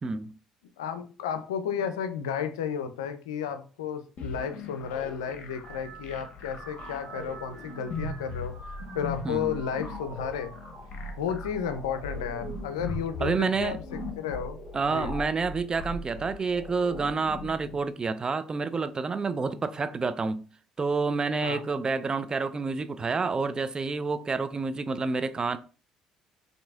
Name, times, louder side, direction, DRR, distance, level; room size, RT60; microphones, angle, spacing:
voice 1, 0.0-0.3 9.2-9.6 13.2-13.8 14.7-20.5 20.8-25.6, right 4 dB, 30° right, 0.4 m, -29 dB
voice 2, 0.8-8.5 8.9-10.5 11.2-15.1 21.4-21.6, left 7 dB, 85° left, 0.4 m, -33 dB
sound 1, 4.2-17.8, left 2 dB, 55° left, 0.9 m, -39 dB
sound 2, 5.2-14.8 15.3-15.8 16.8-17.2, right 4 dB, 65° right, 1.5 m, -50 dB
5.8 x 2.7 x 2.3 m
hypercardioid pair, 60°, 3 cm